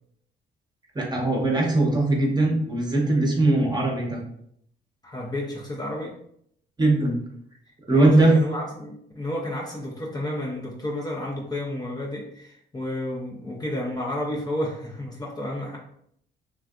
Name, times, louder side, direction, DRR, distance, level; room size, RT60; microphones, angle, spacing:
voice 1, 0.9-4.2 6.8-7.2 7.9-8.4, right 2 dB, 20° right, -1 dB, 0.9 m, -20 dB
voice 2, 5.0-6.1 7.9-15.8, left 1 dB, 20° left, -3 dB, 0.6 m, -31 dB
3.4 x 2.5 x 2.4 m, 0.69 s
cardioid pair, 90°, 20 cm